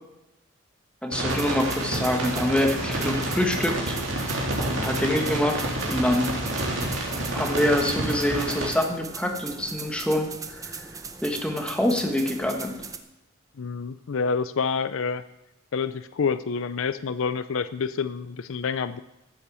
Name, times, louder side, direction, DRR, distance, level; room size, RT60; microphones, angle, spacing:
voice 1, 1.0-4.0 4.6-6.3 7.3-10.7 11.2-12.8, left 1 dB, 5° left, 2 dB, 1.5 m, -26 dB
sound 1, 1.1-8.7, right 1 dB, 60° right, 3.3 m, -29 dB
sound 2, 1.3-13.0, right 5 dB, 15° right, 0.7 m, -40 dB
voice 2, 13.6-15.2 15.7-19.0, left 5 dB, 65° left, 13 dB, 0.5 m, -28 dB
13.5 x 8.3 x 7.0 m, 0.94 s
head